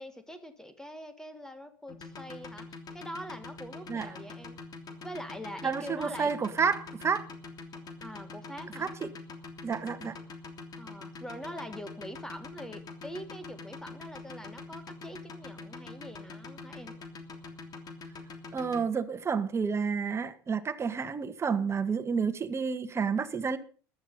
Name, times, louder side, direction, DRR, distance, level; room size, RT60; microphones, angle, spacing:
voice 1, 0.0-4.6 5.0-6.3 8.0-8.9 10.8-17.0, equal, 5° left, 1.6 m, -43 dB
sound 1, 1.9-18.8, left 4 dB, 35° left, 3.1 m, -44 dB
voice 2, 5.6-7.3 8.8-8.9 9.6-10.2 18.5-23.6, right 5 dB, 25° right, 1.6 m, -30 dB
15.0 x 11.5 x 5.3 m
hypercardioid pair, 75°, 11 cm